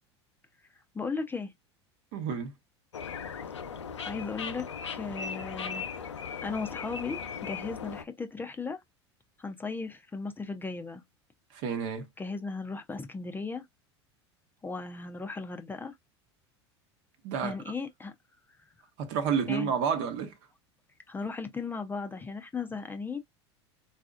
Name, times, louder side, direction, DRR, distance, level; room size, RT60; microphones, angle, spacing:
voice 1, 0.9-1.5 4.0-6.1 6.4-8.8 9.4-11.0 12.2-13.6 14.6-15.9 17.4-18.1 19.5-19.7 21.1-23.2, left 4 dB, 15° left, 0.5 m, -36 dB
voice 2, 2.1-2.5 11.5-12.1 17.2-17.6 19.0-20.4, right 7 dB, 55° right, 1.0 m, -30 dB
sound 1, 2.9-8.0, left 6 dB, 85° left, 0.5 m, -38 dB
4.0 x 2.4 x 2.4 m
figure-of-eight pair, 80°, 15 cm